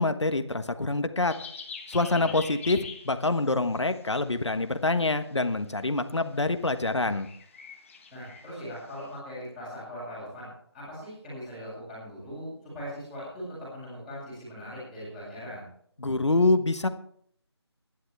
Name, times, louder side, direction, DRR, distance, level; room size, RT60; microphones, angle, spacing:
voice 1, 0.0-1.3 1.9-7.3 16.0-16.9, left 2 dB, 90° left, 9 dB, 1.4 m, -26 dB
sound 1, 1.3-4.5 4.9-5.4 5.7-6.1 6.3-9.2, left 5 dB, 30° left, 1.3 m, -45 dB
voice 2, 2.0-2.4 8.1-15.7, equal, ahead, -16 dB, 6.9 m, -40 dB
23.0 x 11.0 x 3.4 m, 0.64 s
figure-of-eight pair, 165°, 14 cm